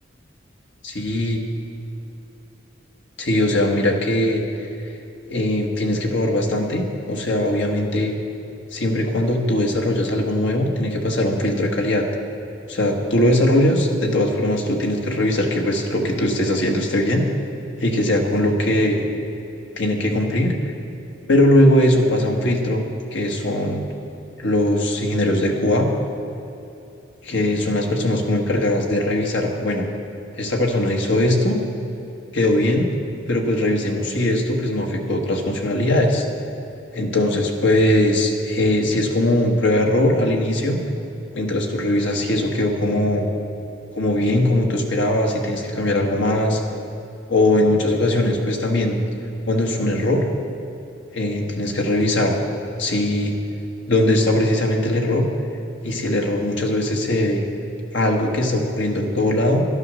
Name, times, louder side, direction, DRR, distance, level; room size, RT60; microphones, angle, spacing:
voice 1, 0.8-1.4 3.2-4.4 5.3-8.1 8.7-12.0 12.7-17.2 17.8-19.0 19.8-20.7 21.3-22.8 23.1-23.8 24.4-25.9 27.2-29.9 30.4-31.6 32.3-32.9 33.3-36.2 36.9-40.8 41.3-43.3 43.9-46.6 47.3-49.0 49.5-50.2 51.1-52.4 52.8-53.3 53.9-55.2 55.8-57.4 57.9-59.7, left 1 dB, 70° left, 1 dB, 1.5 m, -20 dB
11.5 x 9.6 x 6.2 m, 2.8 s
head